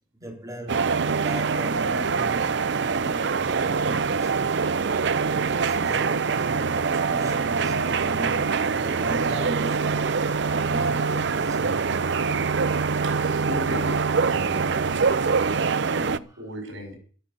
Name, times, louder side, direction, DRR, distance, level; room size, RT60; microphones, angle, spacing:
voice 1, 0.2-3.3 3.6-4.4 5.3-12.0, right 1 dB, 20° right, 3.9 m, -38 dB
sound 1, 0.7-16.2, right 5 dB, 60° right, 0.6 m, -24 dB
voice 2, 13.0-17.0, equal, 90° right, 5.7 m, -37 dB
12.5 x 12.0 x 6.7 m
head